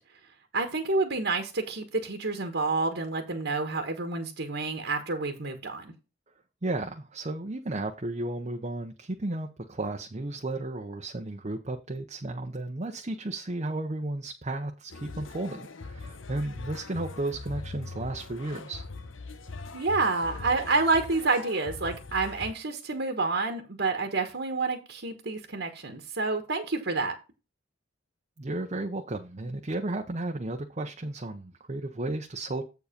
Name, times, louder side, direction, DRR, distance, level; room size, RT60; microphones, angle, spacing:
voice 1, 0.5-5.9 19.7-27.1, right 3 dB, 65° right, 1.4 m, -28 dB
voice 2, 6.6-18.8 28.4-32.6, right 2 dB, 35° right, 0.8 m, -34 dB
sound 1, 14.9-22.5, left 3 dB, 80° left, 0.9 m, -41 dB
8.0 x 4.9 x 5.1 m
head